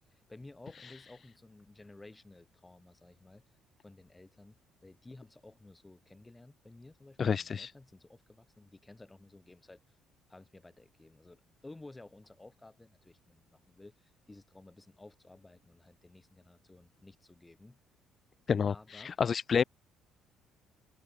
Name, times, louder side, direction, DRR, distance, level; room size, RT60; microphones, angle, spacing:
voice 1, 0.1-3.4 3.8-10.0 10.3-17.8 18.7-19.4, left 2 dB, 15° left, 5.1 m, -54 dB
voice 2, 7.2-7.7 18.5-19.6, left 6 dB, 40° left, 0.5 m, -29 dB
figure-of-eight pair, 50°, 0 cm